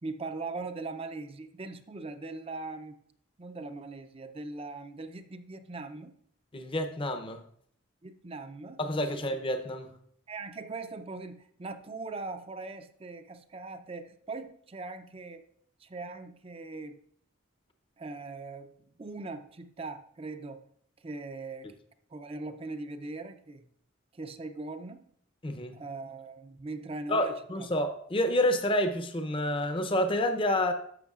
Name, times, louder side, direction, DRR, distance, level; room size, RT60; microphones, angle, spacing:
voice 1, 0.0-3.0 3.4-6.2 8.0-8.8 9.1-9.3 10.3-15.4 15.8-17.0 18.0-18.7 19.0-20.7 21.0-21.7 22.1-23.7 24.1-25.1 25.7-27.4, right 3 dB, 30° right, 9 dB, 0.5 m, -40 dB
voice 2, 6.5-7.4 8.8-9.9 25.4-25.8 27.1-30.7, left 1 dB, 25° left, 7 dB, 0.6 m, -28 dB
11.0 x 7.0 x 2.4 m, 0.64 s
head